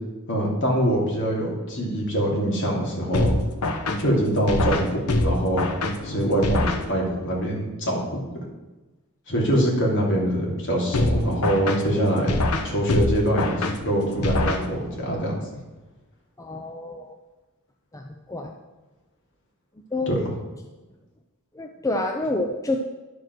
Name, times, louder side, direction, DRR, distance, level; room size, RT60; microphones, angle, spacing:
voice 1, 0.3-3.4 4.0-5.7 6.0-8.2 9.3-12.4 12.6-15.3 20.1-20.2, right 1 dB, 60° left, -2 dB, 2.8 m, -24 dB
sound 1, 3.1-7.3 10.9-15.1, left 2 dB, 85° left, 1.0 m, -26 dB
voice 2, 16.4-17.2 17.9-18.5 19.9-20.1 21.5-22.8, left 2 dB, 15° left, 3 dB, 0.5 m, -28 dB
11.0 x 5.0 x 6.1 m, 1.1 s
head